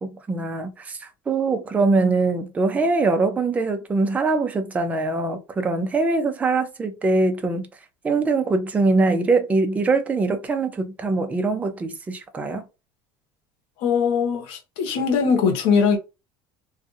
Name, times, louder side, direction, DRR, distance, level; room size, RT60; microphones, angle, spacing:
voice 1, 0.0-7.7 8.0-12.6, right 3 dB, 15° right, 0.4 m, -22 dB
voice 2, 13.8-16.0, left 6 dB, 80° left, 1.0 m, -21 dB
2.5 x 2.4 x 2.6 m
cardioid pair, 140°, 10 cm